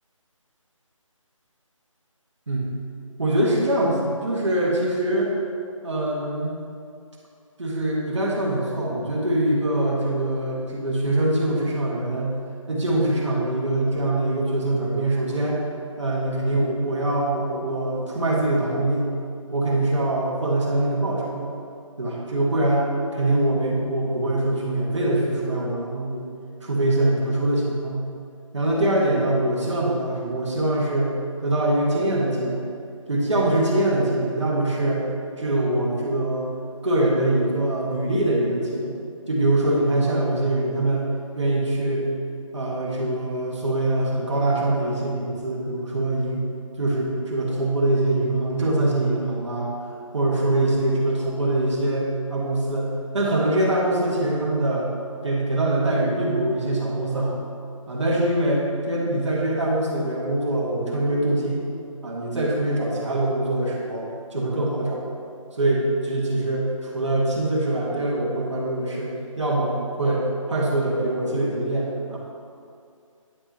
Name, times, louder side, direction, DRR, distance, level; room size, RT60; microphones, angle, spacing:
voice 1, 3.2-5.3 5.8-6.6 7.6-12.4 12.7-15.6 16.0-19.1 19.5-21.5 22.0-26.3 26.6-28.0 28.5-32.6 33.1-35.0 35.4-36.5 36.8-38.9 39.3-41.1 41.3-42.1 42.5-46.4 46.8-49.7 50.1-54.9 55.2-57.4 57.9-61.6 62.0-65.0 65.6-72.2, right 1 dB, 60° right, -3 dB, 1.6 m, -23 dB
9.8 x 5.3 x 2.9 m, 2.4 s
figure-of-eight pair, 180°, 17 cm